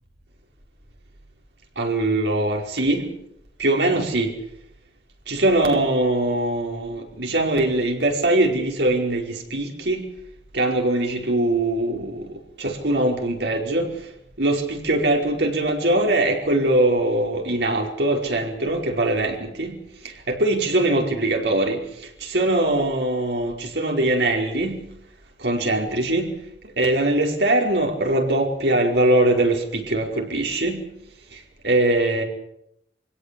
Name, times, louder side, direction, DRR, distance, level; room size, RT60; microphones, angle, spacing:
voice 1, 1.8-3.1 3.6-4.3 5.3-10.0 10.5-12.3 12.6-13.9 14.4-19.8 20.0-21.8 22.2-24.9 25.4-26.3 26.8-30.9 31.6-32.2, right 1 dB, 80° right, 2 dB, 5.0 m, -22 dB
24.5 x 17.0 x 8.4 m, 0.77 s
head